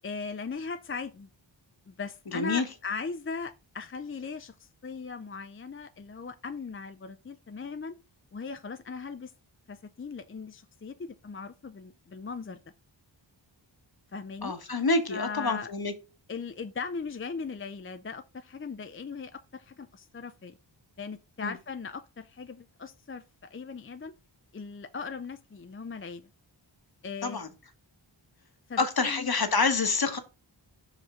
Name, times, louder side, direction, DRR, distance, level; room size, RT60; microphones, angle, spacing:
voice 1, 0.0-1.3 1.9-8.0 8.3-9.3 9.7-12.6 14.1-14.5 15.1-15.7 16.3-20.5 21.0-24.1 24.5-26.3 27.0-27.4 28.7-29.3, left 5 dB, 30° left, 0.5 m, -39 dB
voice 2, 2.3-2.7 14.4-15.9 21.4-21.5 27.2-27.5 28.8-30.2, left 3 dB, 55° left, 1.2 m, -27 dB
5.5 x 5.0 x 3.6 m
wide cardioid pair, 70°, 45 cm